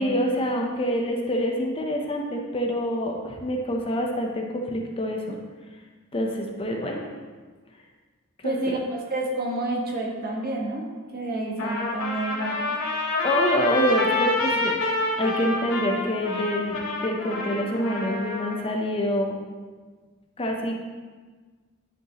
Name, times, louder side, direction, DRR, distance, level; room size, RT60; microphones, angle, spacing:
voice 1, 0.0-5.4 6.1-7.1 8.4-8.8 13.2-14.7 15.2-19.4 20.4-20.8, equal, 25° left, 1 dB, 0.7 m, -26 dB
voice 2, 8.4-10.8 11.1-12.5, right 2 dB, 45° right, -2 dB, 1.4 m, -29 dB
Trumpet, 11.6-18.6, left 2 dB, 80° left, 2.0 m, -27 dB
10.5 x 5.1 x 2.9 m, 1.4 s
head